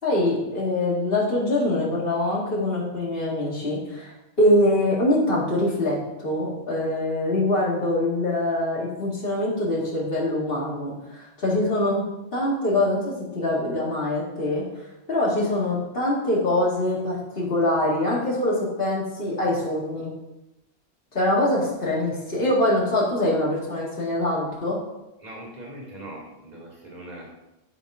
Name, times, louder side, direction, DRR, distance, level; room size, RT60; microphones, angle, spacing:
voice 1, 0.0-4.1 4.4-14.6 15.1-20.1 21.1-24.8, left 1 dB, 55° left, -5 dB, 2.3 m, -24 dB
voice 2, 25.2-27.3, right 1 dB, 40° right, -4 dB, 2.2 m, -40 dB
11.5 x 4.0 x 4.8 m, 0.97 s
omnidirectional pair, 1.1 m